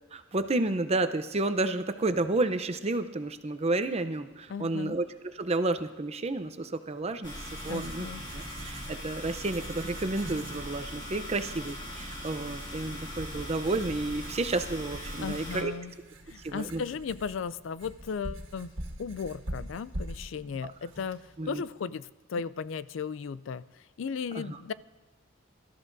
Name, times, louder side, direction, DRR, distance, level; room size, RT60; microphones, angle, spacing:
voice 1, 0.1-5.1 5.3-7.3 7.6-8.1 8.3-15.7 16.4-16.8 20.6-20.7 21.4-21.6 24.3-24.6, right 2 dB, 30° right, 9 dB, 0.7 m, -31 dB
voice 2, 4.5-5.0 7.7-8.2 15.2-15.9 16.3-18.7 19.0-23.6 24.0-24.7, left 6 dB, 70° left, 17 dB, 0.4 m, -36 dB
Writing, 6.9-21.7, right 1 dB, 70° right, 1.8 m, -45 dB
sound 1, 7.2-15.6, equal, 25° left, 2.9 m, -40 dB
23.5 x 13.0 x 2.7 m, 1.3 s
head